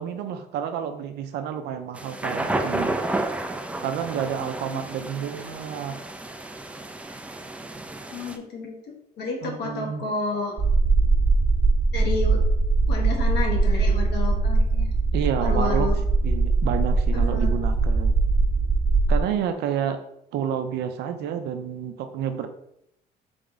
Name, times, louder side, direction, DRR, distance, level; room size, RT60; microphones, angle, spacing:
voice 1, 0.0-3.0 3.8-6.0 9.4-10.0 15.1-15.9 16.2-18.1 19.1-20.0 20.3-22.5, right 8 dB, 80° right, 8 dB, 0.6 m, -29 dB
sound 1, 1.9-8.4, right 2 dB, 10° right, 0.4 m, -31 dB
voice 2, 4.4-4.9 8.1-8.8 9.2-10.6 11.9-12.4 12.9-14.9 15.4-16.0 17.1-17.6, left 4 dB, 80° left, 1 dB, 1.2 m, -31 dB
sound 2, 10.6-19.2, right 3 dB, 30° right, 0.8 m, -21 dB
3.7 x 3.5 x 4.0 m, 0.75 s
cardioid pair, 110°, 17 cm